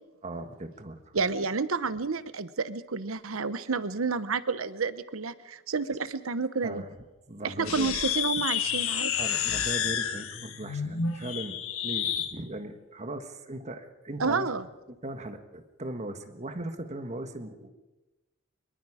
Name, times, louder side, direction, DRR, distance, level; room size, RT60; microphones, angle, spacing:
voice 1, 0.2-1.0 6.6-7.0 7.3-7.9 9.1-14.5 14.9-17.7, right 1 dB, 35° right, 7 dB, 1.5 m, -38 dB
voice 2, 1.1-6.8 7.4-9.1 14.2-14.6, right 4 dB, 75° right, 14 dB, 0.9 m, -30 dB
sound 1, 7.6-12.3, left 8 dB, 75° left, 1.5 m, -30 dB
23.5 x 22.5 x 5.0 m, 1.1 s
head